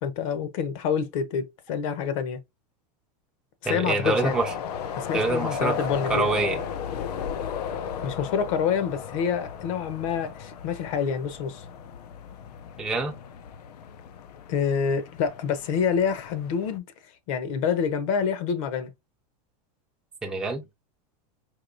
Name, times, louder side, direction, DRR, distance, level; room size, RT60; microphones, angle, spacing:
voice 1, 0.0-2.4 3.6-4.4 5.0-6.3 8.0-11.6 14.5-16.8 17.3-18.9, left 7 dB, 60° left, 0.9 m, -27 dB
voice 2, 3.7-4.5 5.1-5.7 6.1-6.6 12.8-13.1 20.2-20.6, right 3 dB, 5° right, 0.5 m, -26 dB
sound 1, 4.0-16.8, left 7 dB, 90° left, 0.7 m, -35 dB
4.7 x 2.8 x 2.6 m
supercardioid pair, 160°, 20 cm